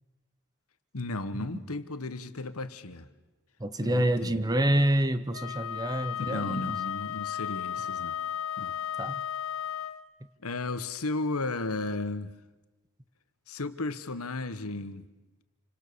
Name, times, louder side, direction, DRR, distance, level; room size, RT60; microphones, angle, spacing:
voice 1, 0.9-3.1 3.8-4.4 6.2-8.1 8.6-8.8 10.4-12.3 13.5-15.0, left 2 dB, 85° left, 1.4 m, -34 dB
voice 2, 3.6-6.8 9.0-9.2, right 1 dB, 15° right, 0.9 m, -27 dB
Wind instrument woodwind instrument, 5.3-10.1, left 9 dB, 70° left, 1.0 m, -34 dB
28.5 x 25.5 x 7.0 m
head